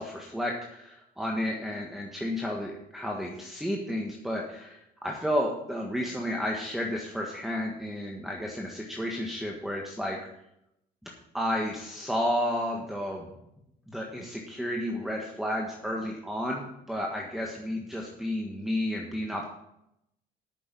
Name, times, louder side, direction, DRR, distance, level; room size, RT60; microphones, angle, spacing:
voice 1, 0.0-10.2 11.0-13.3 13.9-19.5, equal, ahead, -1 dB, 1.5 m, -32 dB
9.1 x 6.8 x 7.0 m, 0.81 s
cardioid pair, 110°, 17 cm